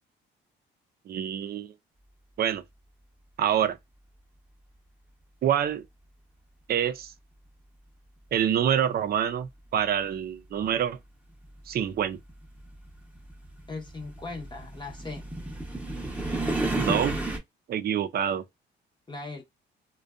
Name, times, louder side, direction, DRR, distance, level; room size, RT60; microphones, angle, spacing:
voice 1, 1.1-1.7 2.4-2.6 3.4-3.8 5.4-5.8 6.7-7.1 8.3-11.0 11.7-12.2 16.8-17.2 17.7-18.4, right 9 dB, 50° right, 0.4 m, -26 dB
sound 1, 10.1-10.2 11.3-17.4, right 2 dB, 5° right, 0.7 m, -32 dB
voice 2, 13.7-15.3 19.1-19.4, left 3 dB, 25° left, 0.7 m, -38 dB
2.5 x 2.2 x 2.3 m
cardioid pair, 90°, 20 cm